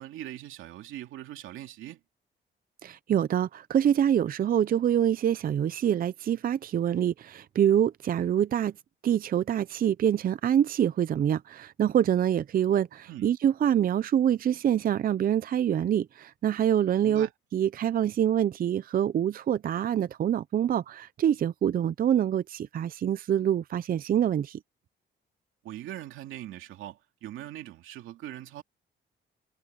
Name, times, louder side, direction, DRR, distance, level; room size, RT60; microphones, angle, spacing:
voice 1, 0.0-2.0 13.1-13.3 17.0-17.3 25.6-28.6, right 13 dB, 85° right, 2.7 m, -41 dB
voice 2, 2.8-8.7 9.0-17.3 17.5-24.6, right 10 dB, 45° right, 0.5 m, -25 dB
cardioid pair, 90°, 20 cm